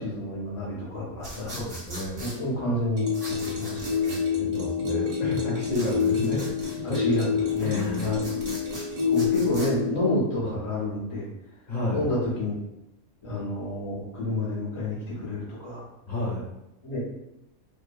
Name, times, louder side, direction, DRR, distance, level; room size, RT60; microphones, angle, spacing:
voice 1, 0.0-1.6 2.2-4.3 6.8-8.5 9.1-11.3 11.9-12.6 13.2-15.8 16.8-17.0, left 1 dB, 55° left, -6 dB, 0.3 m, -29 dB
sound 1, 1.2-2.4 3.1-4.2 5.7-6.8 7.4-9.7, right 1 dB, 25° right, 0.6 m, -41 dB
voice 2, 1.5-2.2 4.4-6.5 6.7-7.0 7.6-8.4 10.4-10.6 11.7-12.1 16.1-16.5, left 1 dB, 35° left, -5 dB, 0.9 m, -31 dB
sound 2, 3.0-10.2, left 7 dB, 75° right, 1.1 m, -27 dB
2.6 x 2.6 x 2.2 m, 0.89 s
omnidirectional pair, 1.5 m